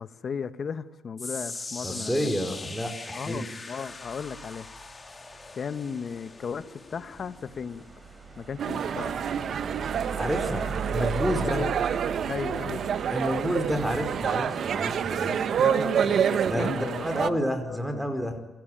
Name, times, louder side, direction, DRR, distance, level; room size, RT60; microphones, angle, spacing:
voice 1, 0.0-2.3 3.1-4.7 5.5-7.8 8.4-9.2 11.4-11.7 12.3-12.9 15.3-17.4 17.7-18.0, left 6 dB, 50° left, 12 dB, 1.6 m, -36 dB
sound 1, 1.2-13.5 13.8-14.2 14.8-14.9, left 3 dB, 25° left, 3.4 m, -43 dB
voice 2, 1.8-3.5 10.2-11.7 13.1-15.6 16.5-18.4, equal, 5° right, 7 dB, 4.9 m, -30 dB
sound 2, 3.9-16.1, right 6 dB, 35° right, 3.5 m, -40 dB
sound 3, 8.6-17.3, right 8 dB, 60° right, 1.3 m, -27 dB
27.0 x 17.0 x 9.1 m, 1.1 s
cardioid pair, 90°, 0 cm